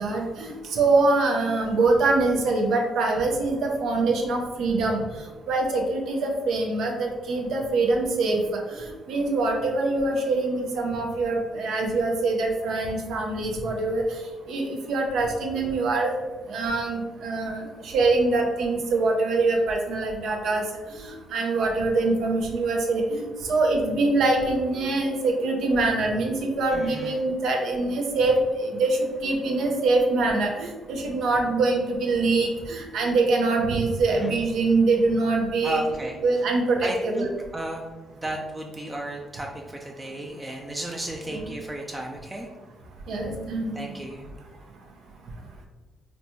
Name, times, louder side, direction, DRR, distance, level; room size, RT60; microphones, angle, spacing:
voice 1, 0.0-5.0 5.5-8.4 8.8-14.0 14.5-16.1 16.5-20.6 21.0-35.8 36.2-37.3 41.3-41.4 43.1-43.7, right 3 dB, 75° right, 1 dB, 0.6 m, -24 dB
voice 2, 26.7-27.2 34.1-34.3 35.6-36.2 36.8-37.9 38.2-42.5 43.7-44.3, right 1 dB, 15° right, 1 dB, 0.4 m, -34 dB
4.0 x 2.2 x 2.9 m, 1.3 s
cardioid pair, 90°, 0 cm